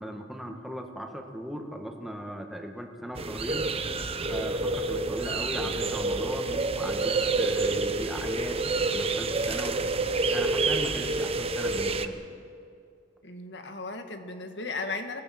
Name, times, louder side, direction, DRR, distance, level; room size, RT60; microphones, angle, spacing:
voice 1, 0.0-3.9 4.3-9.8 10.3-12.2, equal, ahead, 2 dB, 2.0 m, -38 dB
sound 1, 3.2-12.1, right 3 dB, 35° right, 1.0 m, -28 dB
voice 2, 13.2-15.2, left 3 dB, 80° left, 6 dB, 1.9 m, -36 dB
27.0 x 19.0 x 6.2 m, 2.4 s
head